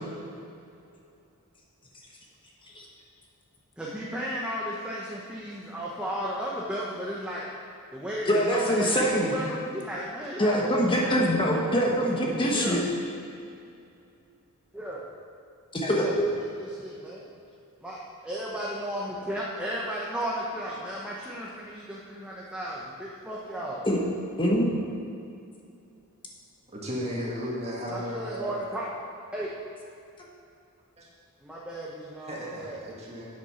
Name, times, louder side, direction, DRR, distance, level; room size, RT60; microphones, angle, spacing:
voice 1, 3.8-7.5 7.9-11.6 12.5-12.9 14.7-15.1 15.9-17.3 17.8-23.8 27.9-28.9 29.3-29.5 31.4-32.8, equal, 5° right, -5 dB, 1.0 m, -34 dB
voice 2, 8.3-9.3 10.4-12.8 15.7-16.2 23.8-24.0 24.4-24.7, equal, 25° left, -2 dB, 1.1 m, -24 dB
voice 3, 26.7-28.6 31.0-31.1 32.3-33.2, equal, 30° right, -4 dB, 2.0 m, -34 dB
8.5 x 8.0 x 5.8 m, 2.5 s
head